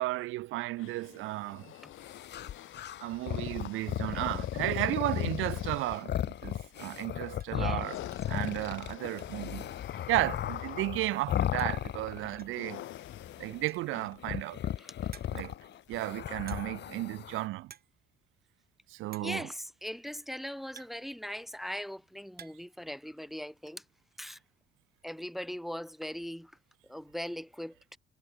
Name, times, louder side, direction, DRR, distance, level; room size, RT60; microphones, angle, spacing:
voice 1, 0.0-1.7 3.0-8.0 8.3-9.7 10.1-12.8 13.4-14.6 15.3-15.5 15.9-17.7 18.9-19.4, right 18 dB, 85° right, 0.5 m, -34 dB
sound 1, 0.7-16.2 17.0-17.1, left 14 dB, 80° left, 3.0 m, -50 dB
sound 2, 2.0-12.4 12.7-13.7 14.2-17.4, left 11 dB, 60° left, 1.0 m, -36 dB
voice 2, 3.7-4.2 7.5-7.9 14.8-15.1 19.2-23.9 24.2-24.4 25.0-28.0, equal, ahead, 0.5 m, -40 dB
sound 3, 7.4-7.6 8.1-8.4 8.7-9.6 9.8-9.9 10.2-10.3 11.3-11.4 11.6-11.9 12.4-12.7 13.5-14.0 14.5-14.6 15.1-15.6 16.5-16.9 17.2-17.4 17.6-18.0 18.2-18.3 19.1-19.4 20.2-21.6 22.0-22.8 23.0-23.8, right 8 dB, 50° right, 1.4 m, -54 dB
cardioid pair, 90°, 20 cm